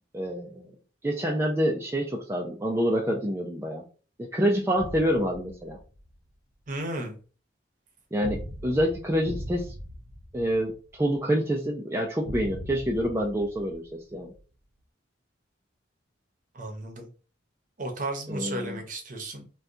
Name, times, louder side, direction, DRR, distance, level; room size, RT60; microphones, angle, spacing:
voice 1, 0.1-0.7 1.0-3.8 4.2-5.8 8.1-9.7 10.3-10.7 11.0-14.3 18.3-18.8, equal, 15° right, 0 dB, 0.3 m, -27 dB
sound 1, 4.8-6.1 8.2-11.2 12.2-14.4, equal, 85° right, 0.8 m, -40 dB
voice 2, 6.7-7.2 16.5-17.1 17.8-19.5, right 2 dB, 45° right, 3 dB, 0.8 m, -34 dB
2.7 x 2.3 x 3.6 m, 0.37 s
head